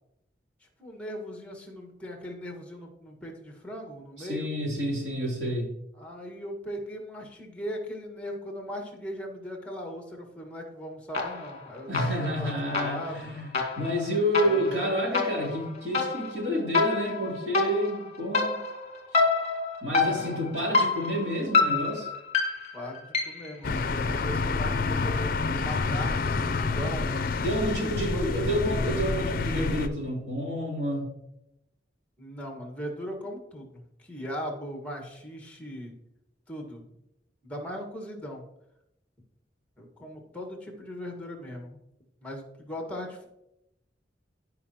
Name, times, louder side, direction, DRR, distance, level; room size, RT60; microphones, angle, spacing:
voice 1, 0.8-4.5 6.0-13.4 14.4-15.0 20.0-20.5 22.7-27.1 27.7-28.3 32.2-35.9 36.5-36.9 37.4-38.4 39.8-41.8 42.2-43.3, equal, 10° left, 2 dB, 1.7 m, -39 dB
voice 2, 4.2-5.7 11.9-18.6 19.1-19.2 19.8-22.1 27.4-31.1, equal, 70° right, -2 dB, 3.2 m, -29 dB
sound 1, 11.1-11.6 11.9-23.6, left 4 dB, 40° left, 1.5 m, -28 dB
sound 2, 23.6-29.9, left 3 dB, 55° left, 0.5 m, -28 dB
15.0 x 5.3 x 2.9 m, 0.83 s
head